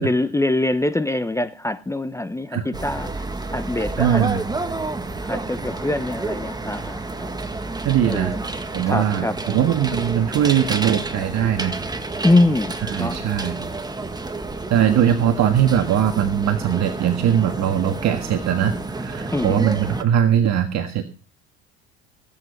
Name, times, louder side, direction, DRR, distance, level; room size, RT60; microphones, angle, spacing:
voice 1, 0.0-3.3 3.5-4.2 5.2-7.3 8.0-8.4 8.9-9.4 12.2-13.2 19.3-19.7, left 2 dB, 10° left, 0.8 m, -23 dB
sound 1, 2.7-20.0, right 2 dB, 10° right, 1.6 m, -30 dB
voice 2, 4.0-4.4 7.8-8.3 8.7-11.8 12.8-13.6 14.7-21.1, right 9 dB, 50° right, 1.6 m, -20 dB
16.5 x 8.7 x 5.3 m
hypercardioid pair, 80°, 34 cm